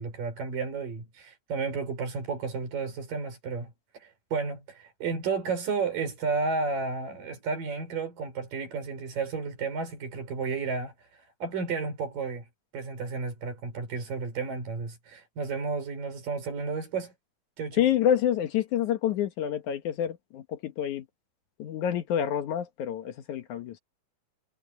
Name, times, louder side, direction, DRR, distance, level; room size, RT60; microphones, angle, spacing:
voice 1, 0.0-12.4 12.7-17.1 17.6-17.8, right 4 dB, 85° right, 6.6 m, -32 dB
voice 2, 17.8-21.0 21.6-23.8, left 10 dB, 70° left, 2.6 m, -28 dB
omnidirectional pair, 3.8 m